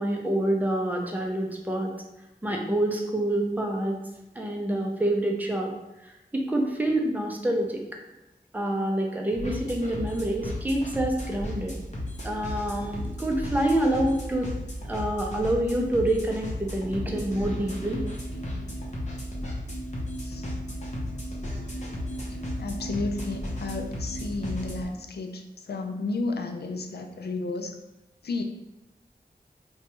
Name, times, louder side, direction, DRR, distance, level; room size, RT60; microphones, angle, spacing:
voice 1, 0.0-1.9 2.4-4.0 4.4-5.7 6.3-7.8 8.5-11.8 12.2-14.5 14.9-18.0, right 1 dB, 10° right, 0 dB, 0.5 m, -27 dB
sound 1, 9.3-24.8, left 1 dB, 45° left, 0.8 m, -34 dB
voice 2, 22.6-27.8 28.2-28.4, left 3 dB, 75° left, 5 dB, 0.4 m, -32 dB
2.9 x 2.2 x 2.9 m, 0.99 s
wide cardioid pair, 60°, 17 cm